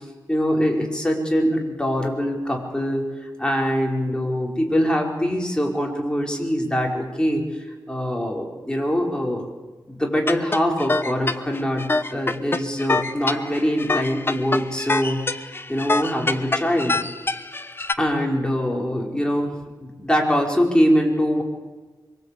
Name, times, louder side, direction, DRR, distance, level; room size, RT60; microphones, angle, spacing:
voice 1, 0.3-7.4 7.9-9.5 9.9-15.2 15.7-17.0 18.0-19.5 19.8-21.4, equal, 10° left, 0 dB, 4.9 m, -23 dB
sound 1, 10.3-17.9, left 3 dB, 30° left, 1.1 m, -25 dB
25.0 x 23.5 x 8.5 m, 1.3 s
wide cardioid pair, 95°, 8 cm